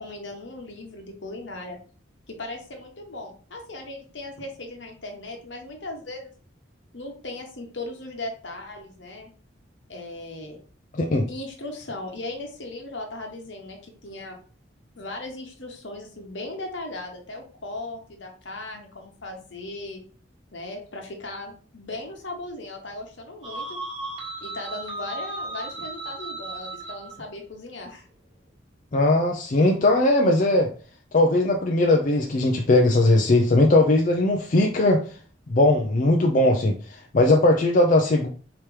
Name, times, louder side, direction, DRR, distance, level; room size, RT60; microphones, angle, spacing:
voice 1, 0.0-1.8 2.3-6.3 6.9-9.3 9.9-10.6 11.3-14.4 15.0-20.0 20.5-23.8 24.4-28.0, left 2 dB, 70° left, 2 dB, 1.1 m, -37 dB
voice 2, 10.9-11.3 28.9-30.7 31.1-35.0 35.5-38.3, left 2 dB, 45° left, 1 dB, 0.4 m, -19 dB
sound 1, 23.4-27.1, right 2 dB, 25° right, 1.0 m, -35 dB
4.8 x 2.9 x 3.2 m, 0.41 s
head